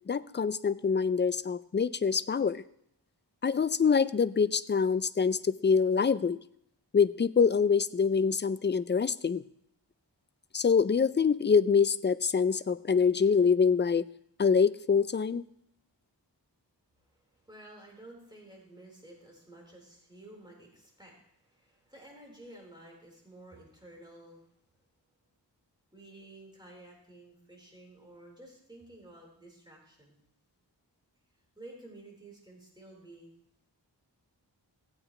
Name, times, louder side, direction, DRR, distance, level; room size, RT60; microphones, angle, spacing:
voice 1, 0.1-2.6 3.4-6.4 6.9-9.4 10.5-14.0 14.4-15.4, left 6 dB, 25° left, 16 dB, 0.4 m, -25 dB
voice 2, 17.0-24.4 25.9-30.2 31.5-33.3, right 1 dB, 10° right, -2 dB, 4.3 m, -52 dB
15.5 x 8.9 x 3.2 m, 0.73 s
wide cardioid pair, 45°, 43 cm